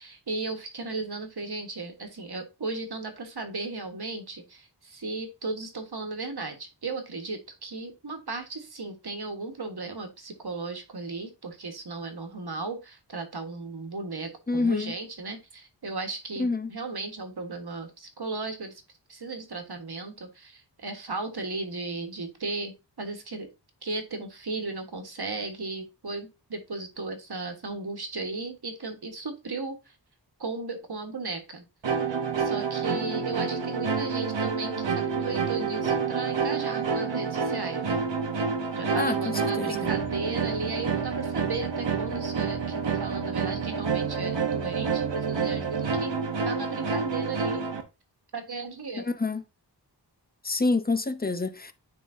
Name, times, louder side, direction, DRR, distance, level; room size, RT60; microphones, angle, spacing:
voice 1, 0.0-18.8 19.1-23.5 23.8-29.9 30.4-32.0 32.4-38.0 38.8-47.6 48.3-49.1, right 3 dB, 60° right, 1.4 m, -36 dB
voice 2, 14.5-14.9 16.4-16.7 38.9-39.9 49.0-49.4 50.4-51.7, left 3 dB, 20° left, 0.7 m, -27 dB
sound 1, 31.8-47.8, right 5 dB, 75° right, 1.0 m, -28 dB
9.7 x 3.7 x 2.6 m
wide cardioid pair, 55°, 44 cm